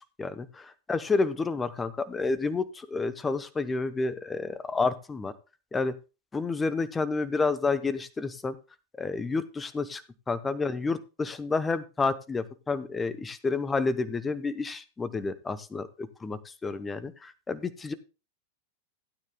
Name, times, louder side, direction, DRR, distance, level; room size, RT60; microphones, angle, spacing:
voice 1, 0.2-5.3 5.7-5.9 6.3-8.6 9.0-10.0 10.3-17.9, left 4 dB, 15° left, 14 dB, 0.8 m, -30 dB
16.0 x 9.2 x 2.2 m, 0.31 s
figure-of-eight pair, 90°, 0 cm